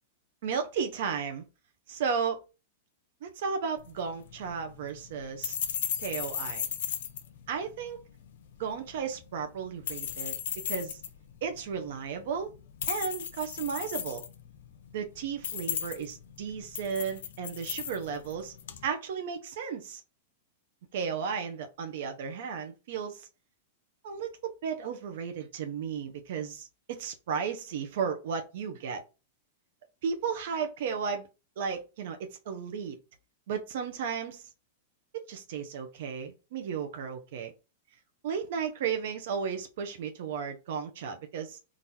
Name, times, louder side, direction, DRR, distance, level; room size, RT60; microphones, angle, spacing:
voice 1, 0.4-1.5 1.9-2.4 3.2-5.6 6.0-6.7 7.5-8.0 8.6-11.0 11.4-12.5 12.9-14.2 14.9-18.5 18.8-20.0 20.9-23.3 24.0-29.0 30.0-31.3 31.6-33.0 33.5-34.5 35.1-37.5 38.2-41.6, right 6 dB, 65° right, 0.6 m, -34 dB
sound 1, 3.8-18.9, left 9 dB, 75° left, 0.6 m, -37 dB
3.8 x 2.5 x 2.9 m
supercardioid pair, 145°, 0 cm